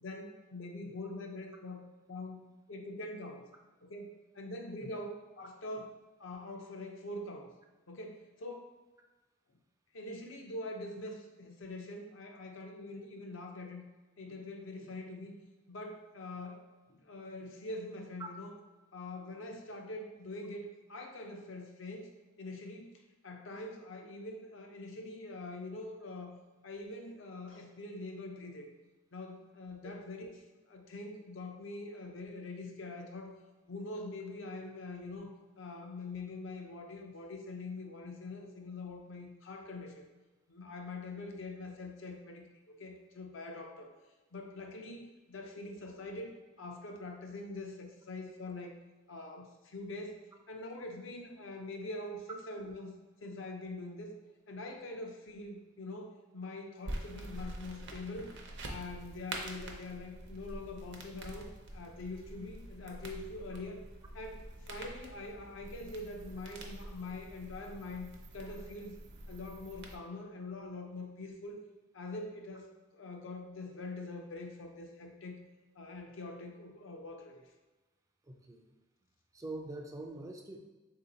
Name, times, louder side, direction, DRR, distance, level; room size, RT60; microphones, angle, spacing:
voice 1, 0.0-3.5 3.8-5.9 6.2-7.5 7.9-8.7 9.9-13.9 14.2-15.3 15.7-16.6 16.9-18.5 18.9-22.1 22.4-22.9 23.2-26.4 26.6-28.7 29.1-33.3 33.7-40.1 40.5-42.4 42.8-43.9 44.3-48.8 49.1-50.2 50.5-52.9 53.2-54.1 54.5-58.3 58.7-63.8 64.1-69.0 69.3-71.6 71.9-72.7 72.9-75.4 75.7-77.4, left 2 dB, 75° left, 3 dB, 0.6 m, -44 dB
sound 1, 56.8-70.0, right 1 dB, 60° right, 0.6 m, -46 dB
voice 2, 78.3-78.6 79.3-80.6, right 2 dB, 15° right, 3 dB, 0.3 m, -44 dB
3.8 x 2.8 x 3.8 m, 1.2 s
head